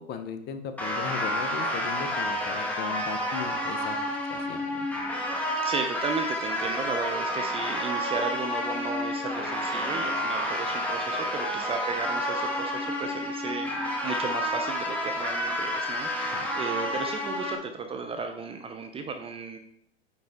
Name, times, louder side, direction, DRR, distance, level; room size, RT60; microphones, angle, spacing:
voice 1, 0.0-4.0 4.3-4.9 16.3-16.5, left 7 dB, 30° left, 8 dB, 0.8 m, -37 dB
sound 1, 0.8-17.6, equal, 5° left, 1.4 m, -30 dB
voice 2, 5.6-19.6, right 4 dB, 15° right, 6 dB, 0.6 m, -34 dB
9.6 x 3.7 x 3.6 m, 0.67 s
hypercardioid pair, 115°, 34 cm